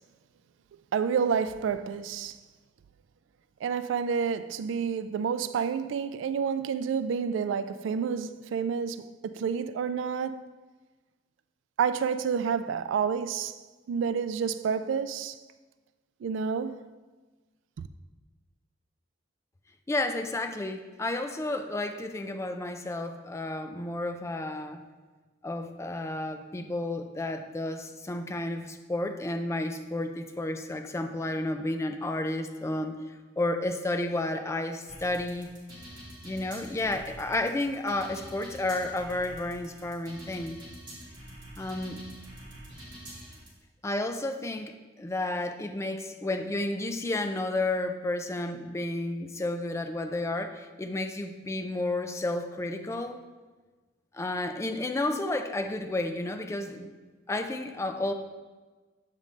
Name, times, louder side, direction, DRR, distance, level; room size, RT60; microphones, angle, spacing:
voice 1, 0.9-2.4 3.6-10.5 11.8-13.6 13.9-15.4 16.2-16.8, right 6 dB, 80° right, 0.3 m, -29 dB
voice 2, 19.9-24.8 25.4-33.0 33.4-35.5 36.2-40.6 41.6-42.0 43.8-53.2 54.1-56.9 57.3-58.1, left 2 dB, 15° left, 0.4 m, -31 dB
sound 1, 34.9-43.5, right 1 dB, 25° right, 1.6 m, -46 dB
7.3 x 5.2 x 3.2 m
head